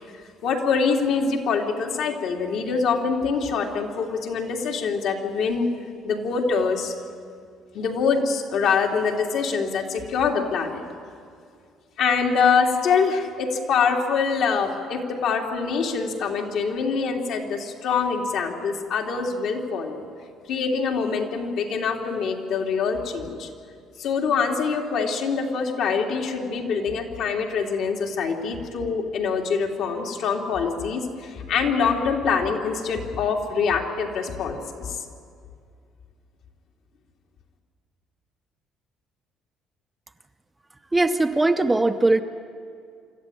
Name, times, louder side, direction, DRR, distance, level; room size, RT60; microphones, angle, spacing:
voice 1, 0.4-5.7 6.0-6.9 7.7-10.8 12.0-20.0 20.5-23.5 24.0-35.0, left 5 dB, 65° left, 1 dB, 2.8 m, -24 dB
voice 2, 40.9-42.2, right 2 dB, 10° right, 7 dB, 0.7 m, -20 dB
25.5 x 13.5 x 9.9 m, 2.3 s
cardioid pair, 140°, 0 cm